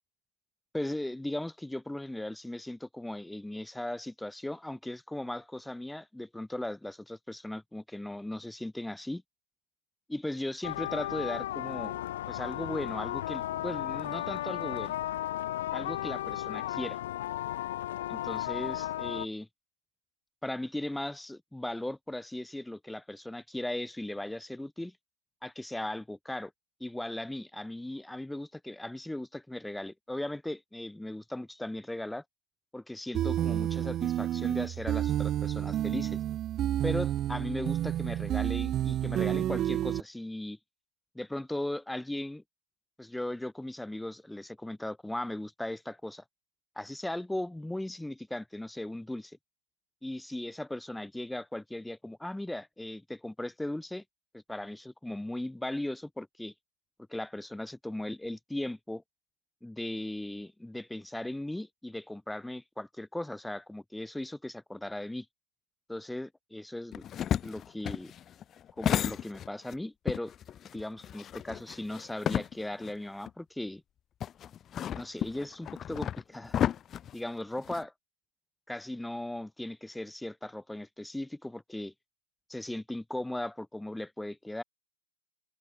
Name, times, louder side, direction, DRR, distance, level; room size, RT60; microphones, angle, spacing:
voice 1, 0.7-9.2 10.1-12.0 12.3-15.0 15.7-17.0 18.1-19.5 20.4-24.9 25.4-26.5 26.8-32.2 32.7-36.2 36.8-40.6 41.2-42.4 43.0-46.2 46.8-49.4 50.0-54.0 54.3-56.5 57.1-59.0 59.6-65.3 65.9-67.1 67.4-68.1 68.8-70.3 70.7-73.8 74.9-76.6 77.1-77.9 78.7-81.9 82.5-84.6, left 1 dB, ahead, 5.3 m, -37 dB
sound 1, 10.6-19.3, left 14 dB, 55° left, 6.5 m, -35 dB
sound 2, 33.1-40.0, right 12 dB, 20° right, 1.9 m, -30 dB
sound 3, 66.9-69.7 70.1-72.9 73.3-73.4 74.2-77.8, left 10 dB, 20° left, 7.0 m, -33 dB
hypercardioid pair, 145°, 0 cm